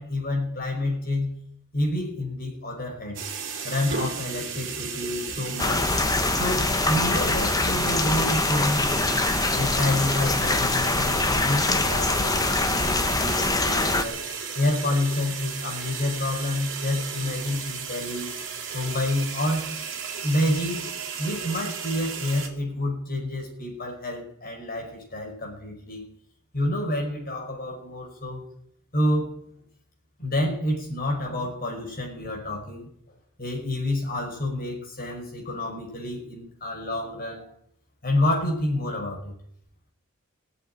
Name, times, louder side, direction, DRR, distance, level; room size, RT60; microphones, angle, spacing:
voice 1, 0.0-1.3 1.7-3.2 3.6-5.9 6.3-8.9 9.5-14.2 14.6-18.3 18.7-19.7 20.2-20.9 21.2-26.0 26.5-28.4 28.9-29.4 30.2-32.9 33.4-37.5 38.0-39.4, left 1 dB, 40° left, 0 dB, 5.4 m, -28 dB
sound 1, 3.1-22.5, right 6 dB, 55° right, 2.7 m, -34 dB
sound 2, 5.6-14.0, left 3 dB, 15° left, 1.0 m, -24 dB
18.0 x 8.1 x 9.2 m, 0.70 s
head